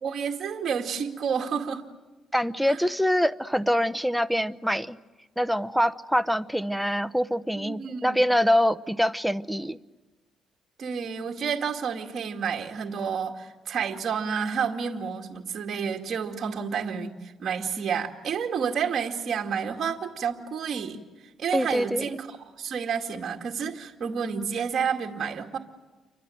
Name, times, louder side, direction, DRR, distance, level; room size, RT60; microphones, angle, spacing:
voice 1, 0.0-1.8 2.7-2.8 7.6-8.2 10.8-21.0 21.4-25.6, right 6 dB, 55° right, 2 dB, 2.2 m, -30 dB
voice 2, 2.3-5.0 5.4-9.8 21.5-22.0, equal, ahead, 12 dB, 0.8 m, -24 dB
29.5 x 24.5 x 7.9 m, 1.2 s
cardioid pair, 90°, 0 cm